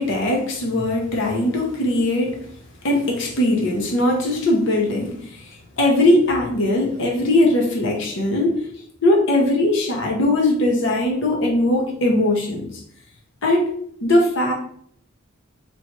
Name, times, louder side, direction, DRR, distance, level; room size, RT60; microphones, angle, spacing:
voice 1, 0.0-2.5 2.8-8.6 9.0-12.7 13.4-13.7 14.0-14.5, left 1 dB, 60° left, 0 dB, 0.8 m, -20 dB
3.0 x 2.9 x 4.3 m, 0.65 s
head